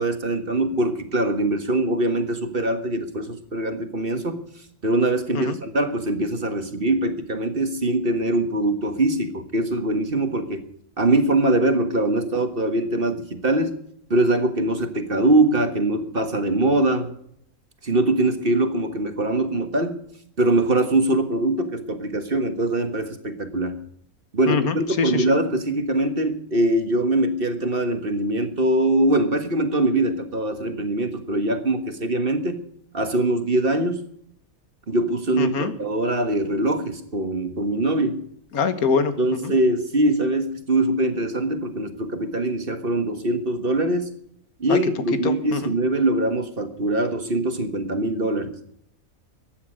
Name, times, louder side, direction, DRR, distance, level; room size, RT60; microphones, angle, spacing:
voice 1, 0.0-4.4 4.8-10.6 11.0-13.8 14.1-17.1 17.8-20.0 20.4-23.8 24.3-32.6 32.9-34.0 34.9-38.2 39.2-44.1 44.6-48.5, right 1 dB, 40° right, 8 dB, 1.8 m, -22 dB
voice 2, 24.5-25.3 35.4-35.7 38.5-39.5 44.7-44.8 45.2-45.7, left 5 dB, 80° left, 10 dB, 1.8 m, -24 dB
15.0 x 10.0 x 6.4 m, 0.67 s
omnidirectional pair, 1.5 m